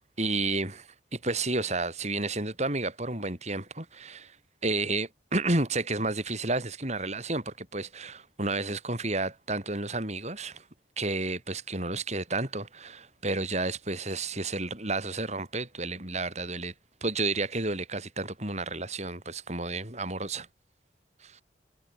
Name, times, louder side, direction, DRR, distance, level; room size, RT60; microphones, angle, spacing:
voice 1, 0.2-0.9 1.1-4.3 4.6-10.6 11.0-16.7 17.0-20.5 21.2-21.4, right 2 dB, 40° right, 5.9 m, -31 dB
head